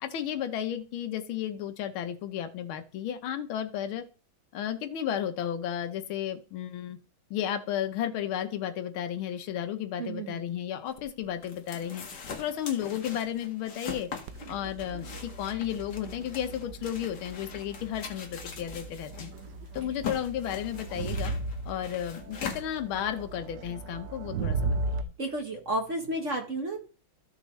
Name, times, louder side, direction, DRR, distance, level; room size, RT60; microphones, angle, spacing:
voice 1, 0.0-4.0 4.5-7.0 7.3-12.0 12.4-14.1 14.5-19.3 19.7-21.3 21.6-25.1, left 10 dB, 80° left, 7 dB, 1.7 m, -33 dB
voice 2, 10.0-10.4 25.2-26.8, right 1 dB, 40° right, 3 dB, 1.4 m, -32 dB
sound 1, 10.9-23.4, left 6 dB, 55° left, 1.9 m, -42 dB
Crowd, 14.3-25.0, right 3 dB, 65° right, 1.2 m, -37 dB
14.0 x 6.4 x 3.2 m, 0.36 s
omnidirectional pair, 2.2 m